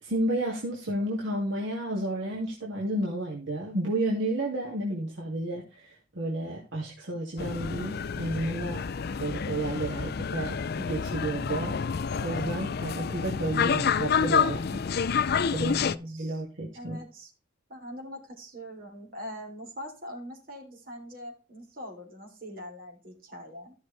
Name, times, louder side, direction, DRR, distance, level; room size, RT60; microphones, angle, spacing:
voice 1, 0.0-5.9 6.1-8.8 9.2-11.8 12.2-14.8 15.5-17.0, right 1 dB, 70° right, -3 dB, 2.4 m, -31 dB
sound 1, 7.4-15.9, left 6 dB, 50° left, 0.4 m, -29 dB
voice 2, 15.7-16.4 16.7-17.3 17.7-23.7, equal, 45° right, 0 dB, 3.6 m, -43 dB
14.5 x 6.4 x 3.4 m, 0.32 s
head